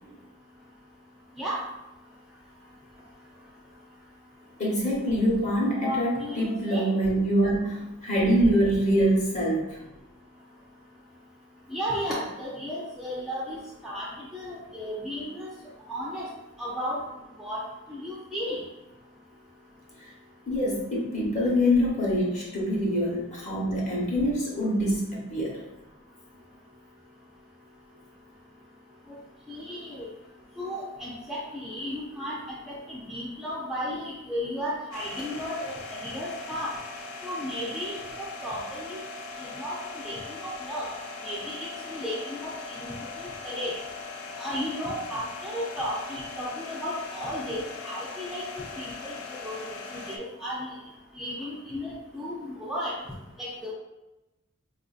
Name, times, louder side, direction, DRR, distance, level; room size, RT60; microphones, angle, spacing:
voice 1, 4.6-9.7 20.0-20.1 20.5-25.6, equal, 35° left, -4 dB, 0.9 m, -25 dB
voice 2, 5.8-6.9 11.7-15.5 15.9-16.3 16.6-17.0 17.4-17.6 17.9-18.6 29.1-29.2 29.5-30.1 30.6-36.7 37.2-39.0 39.4-40.9 41.2-43.7 44.4-50.8 51.2-52.9 53.4-53.7, equal, ahead, -6 dB, 0.4 m, -34 dB
sound 1, 34.9-50.2, left 4 dB, 75° left, 0.5 m, -40 dB
4.4 x 2.5 x 2.4 m, 1.0 s
head